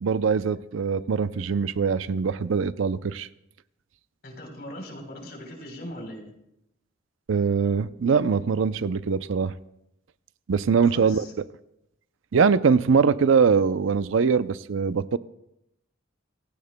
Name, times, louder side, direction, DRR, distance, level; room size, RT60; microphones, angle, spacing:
voice 1, 0.0-3.3 7.3-9.5 10.5-11.3 12.3-15.2, right 5 dB, 70° right, 15 dB, 0.5 m, -22 dB
voice 2, 4.2-6.2 10.9-11.3, left 1 dB, 50° left, 2 dB, 3.7 m, -39 dB
27.5 x 16.0 x 2.2 m, 0.83 s
head